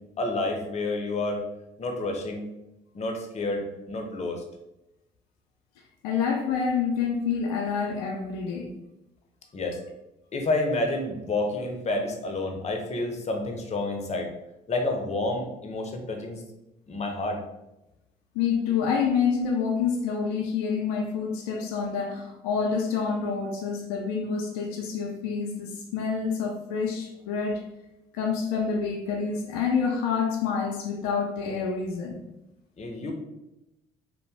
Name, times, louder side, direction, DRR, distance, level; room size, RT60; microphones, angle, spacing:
voice 1, 0.2-1.4 1.8-2.5 2.9-4.4 9.5-9.8 10.3-14.3 14.7-16.4 16.9-17.4 32.8-33.1, left 2 dB, 40° left, 3 dB, 0.7 m, -29 dB
voice 2, 6.0-8.7 18.3-27.6 28.1-32.2, left 6 dB, 85° left, 1 dB, 0.4 m, -27 dB
2.7 x 2.2 x 3.3 m, 0.91 s
hypercardioid pair, 55°, 18 cm